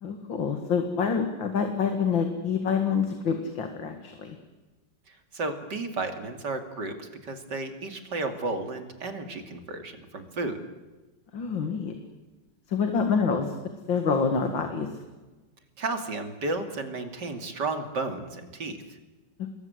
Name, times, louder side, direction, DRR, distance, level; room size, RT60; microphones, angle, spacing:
voice 1, 0.0-4.4 11.3-11.9 12.7-13.6 13.9-14.9, left 6 dB, 85° left, 6 dB, 2.7 m, -27 dB
voice 2, 5.1-10.6 15.8-18.8, right 3 dB, 65° right, 6 dB, 3.2 m, -33 dB
27.0 x 21.5 x 8.0 m, 1.2 s
omnidirectional pair, 2.0 m